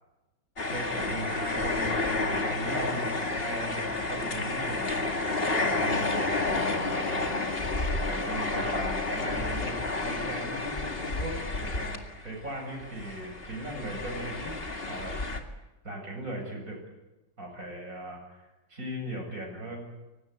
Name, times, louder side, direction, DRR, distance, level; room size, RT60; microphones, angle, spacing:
sound 1, 0.6-12.5 12.7-15.4, left 3 dB, 30° left, 2.3 m, -30 dB
voice 1, 0.7-7.3 8.1-14.6 14.9-15.2 15.8-16.8 17.4-19.9, right 1 dB, 45° right, 1 dB, 8.3 m, -38 dB
24.0 x 19.0 x 10.0 m, 1.0 s
omnidirectional pair, 2.1 m